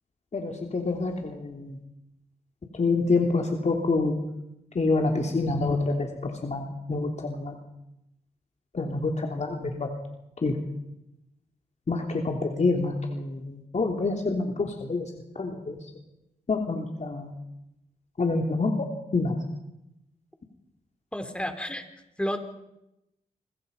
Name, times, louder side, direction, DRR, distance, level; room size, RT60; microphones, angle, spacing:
voice 1, 0.3-1.8 2.7-4.2 4.7-7.5 8.7-9.9 10.4-10.6 11.9-15.8 16.5-17.3 18.2-18.7 19.1-19.4, left 3 dB, 50° left, 2 dB, 3.3 m, -27 dB
voice 2, 21.1-21.8 22.2-22.4, equal, 5° left, 7 dB, 4.1 m, -30 dB
28.5 x 22.0 x 5.6 m, 0.87 s
cardioid pair, 60°, 16 cm